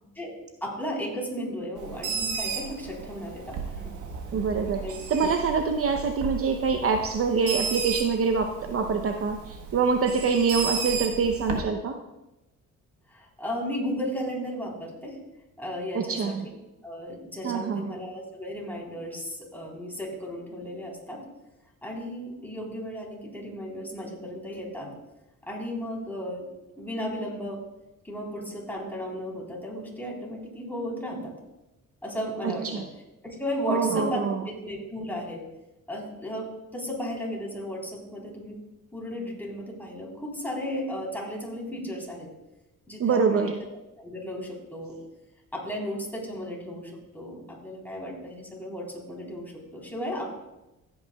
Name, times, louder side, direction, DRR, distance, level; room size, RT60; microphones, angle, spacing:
voice 1, 0.6-3.9 4.8-5.0 6.0-6.1 13.1-15.2 15.6-16.3 16.8-21.2 21.8-24.9 25.4-26.4 26.8-27.6 28.0-31.3 32.0-32.7 33.2-35.4 35.9-36.5 36.7-38.6 38.9-42.3 42.9-43.5 44.0-45.0 45.5-50.3, equal, 5° left, -3 dB, 3.7 m, -35 dB
Bird, 1.8-11.6, right 6 dB, 80° right, 1.4 m, -34 dB
voice 2, 4.3-4.8 5.1-12.0 15.9-16.5 17.4-17.9 32.4-32.9 33.7-34.4 43.0-43.6, right 5 dB, 50° right, 6 dB, 0.7 m, -25 dB
16.0 x 8.7 x 2.3 m, 0.96 s
cardioid pair, 90°, 30 cm